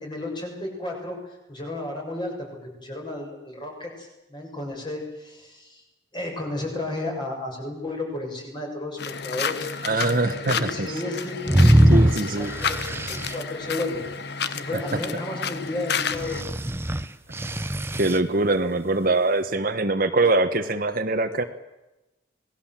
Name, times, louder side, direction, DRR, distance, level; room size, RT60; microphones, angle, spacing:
voice 1, 0.0-2.5 2.8-5.8 6.1-9.0 9.2-9.7 10.4-14.0 14.4-16.4, left 2 dB, 25° left, 1 dB, 6.8 m, -33 dB
sound 1, 9.0-16.4, left 6 dB, 55° left, 1.2 m, -31 dB
voice 2, 9.8-11.0 11.9-12.5 14.7-15.0 17.9-21.4, right 2 dB, 45° right, 7 dB, 1.4 m, -23 dB
sound 2, 11.5-13.3 16.1-18.2, right 1 dB, 10° right, 0.7 m, -20 dB
27.5 x 19.5 x 7.6 m, 1.0 s
head